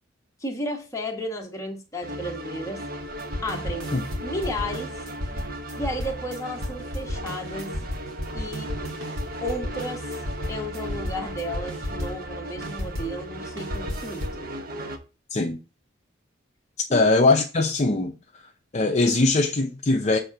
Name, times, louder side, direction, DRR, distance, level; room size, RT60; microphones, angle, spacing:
voice 1, 0.4-2.9 3.4-3.9 4.2-4.9 5.8-7.8 8.3-8.7 9.4-10.1 10.5-14.4 16.9-17.1, equal, 15° left, 1.4 m, -33 dB
sound 1, 2.0-15.0, right 1 dB, 50° right, 1.0 m, -36 dB
sound 2, 3.0-13.2 13.6-14.4, left 1 dB, 80° right, 1.7 m, -34 dB
voice 2, 16.9-18.1 18.7-20.2, left 3 dB, 35° left, 0.7 m, -21 dB
7.1 x 3.7 x 5.8 m
head